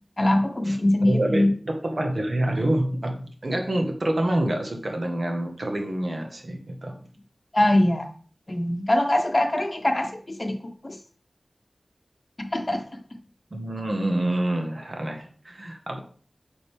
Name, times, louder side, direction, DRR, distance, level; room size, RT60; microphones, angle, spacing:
voice 1, 0.2-1.5 7.5-8.1 8.5-10.6 10.8-11.0 12.5-12.8, left 1 dB, 35° left, 5 dB, 1.1 m, -22 dB
voice 2, 1.0-7.0 13.5-16.0, right 1 dB, 55° right, 3 dB, 1.6 m, -27 dB
9.0 x 5.3 x 3.6 m, 0.43 s
wide cardioid pair, 70°, 0 cm